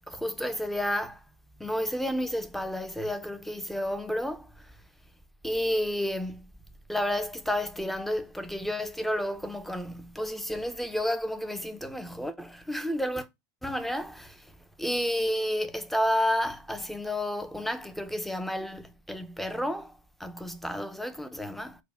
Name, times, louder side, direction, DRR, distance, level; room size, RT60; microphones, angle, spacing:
voice 1, 0.1-1.2 1.6-4.5 5.4-6.5 6.9-13.3 13.6-14.5 14.8-19.9 20.2-21.8, equal, ahead, 0.5 m, -31 dB
4.9 x 2.1 x 4.7 m
supercardioid pair, 130°, 9 cm